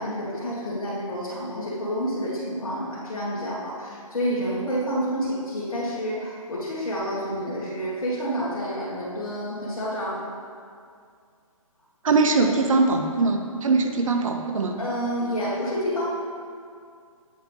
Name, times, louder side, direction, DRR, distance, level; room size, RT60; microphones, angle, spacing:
voice 1, 0.0-10.3 12.4-12.5 14.8-16.1, equal, 75° left, -8 dB, 1.6 m, -29 dB
voice 2, 12.0-14.8, right 3 dB, 70° right, 5 dB, 0.7 m, -21 dB
8.5 x 5.5 x 3.2 m, 2.3 s
hypercardioid pair, 145°, 18 cm